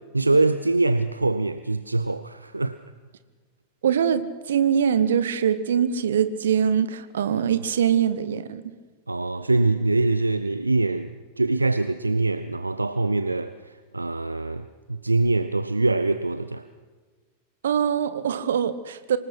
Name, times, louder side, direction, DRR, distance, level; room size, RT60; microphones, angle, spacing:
voice 1, 0.1-2.8 9.1-16.6, right 2 dB, 80° right, 0.6 m, -24 dB
voice 2, 3.8-8.6 17.6-19.2, right 8 dB, 65° right, 1.2 m, -23 dB
25.0 x 19.5 x 6.0 m
figure-of-eight pair, 90°, 0 cm